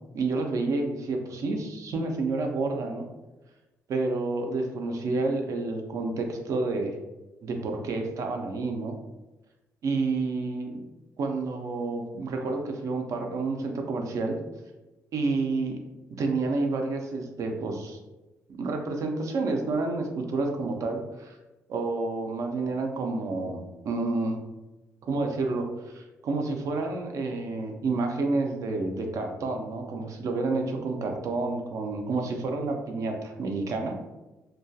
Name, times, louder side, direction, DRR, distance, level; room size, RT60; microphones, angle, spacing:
voice 1, 0.1-3.1 3.9-6.9 7.4-8.9 9.8-10.8 11.2-14.4 15.1-15.8 16.1-18.0 18.5-21.4 21.7-24.4 25.0-34.1, right 3 dB, 60° right, 3 dB, 0.4 m, -29 dB
2.2 x 2.2 x 2.6 m, 1.1 s
cardioid pair, 95°, 6 cm